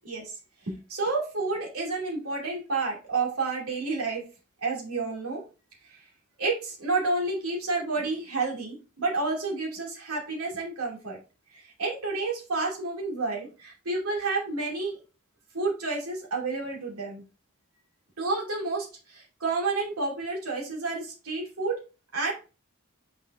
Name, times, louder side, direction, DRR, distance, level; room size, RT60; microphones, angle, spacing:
voice 1, 0.0-0.4 0.6-4.2 4.6-5.4 5.8-6.0 6.4-11.2 11.5-15.0 15.5-17.2 18.2-21.8 22.1-22.3, right 3 dB, 85° right, -2 dB, 2.7 m, -30 dB
6.6 x 5.4 x 2.6 m, 0.31 s
head